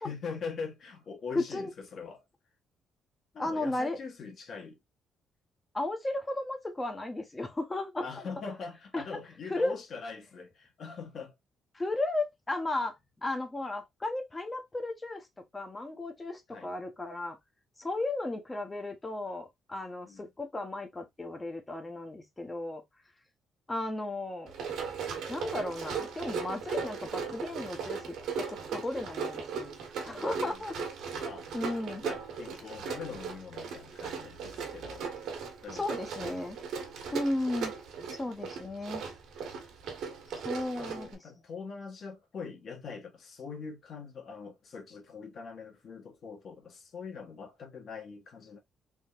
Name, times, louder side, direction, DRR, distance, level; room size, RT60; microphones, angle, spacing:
voice 1, 0.0-2.2 3.3-4.8 8.0-11.3 16.5-16.7 20.1-20.3 30.1-30.6 31.1-31.5 32.0-35.1 35.6-35.8 36.2-36.4 40.8-48.6, left 5 dB, 40° left, 1.2 m, -43 dB
voice 2, 1.3-1.7 3.4-4.0 5.7-8.1 8.9-9.0 9.5-9.7 11.7-15.3 15.5-17.4 17.8-22.8 23.7-24.5 25.3-30.9 31.5-32.1 35.7-36.6 37.1-37.7 38.1-39.0 40.3-41.1, left 2 dB, 15° left, 0.8 m, -35 dB
Run, 24.5-41.1, right 6 dB, 70° right, 1.4 m, -38 dB
3.6 x 3.4 x 2.5 m
cardioid pair, 180°, 0 cm